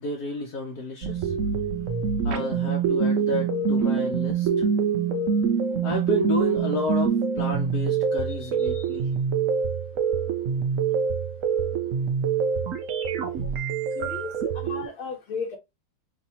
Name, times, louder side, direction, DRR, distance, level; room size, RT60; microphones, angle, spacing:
voice 1, 0.0-1.3 2.2-4.7 5.7-9.1 13.4-13.5, left 2 dB, 60° left, 1.2 m, -31 dB
sound 1, 1.0-14.9, right 6 dB, 70° right, 0.7 m, -25 dB
voice 2, 8.4-8.9 14.0-15.6, left 5 dB, 90° left, 2.1 m, -35 dB
5.7 x 2.7 x 2.8 m
omnidirectional pair, 2.3 m